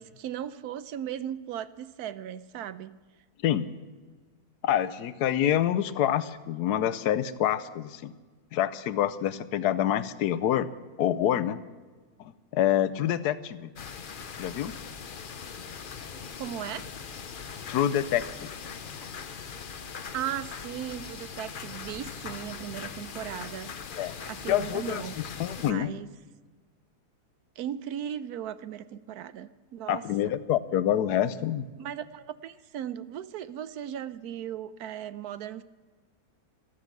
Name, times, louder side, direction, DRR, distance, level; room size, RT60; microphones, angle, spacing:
voice 1, 0.0-3.0 16.3-16.9 20.1-23.7 24.1-25.1 25.6-26.1 27.6-30.4 31.8-35.6, right 10 dB, 80° right, 14 dB, 1.1 m, -37 dB
voice 2, 4.6-8.1 8.5-10.7 11.0-11.6 12.2-13.7 14.4-14.7 17.7-18.5 24.0-24.2 24.5-25.0 25.4-25.9 29.9-31.6, left 11 dB, 85° left, 13 dB, 1.2 m, -27 dB
sound 1, 13.8-25.7, left 6 dB, 45° left, 0.7 m, -41 dB
13.5 x 13.0 x 6.0 m, 1.4 s
omnidirectional pair, 1.7 m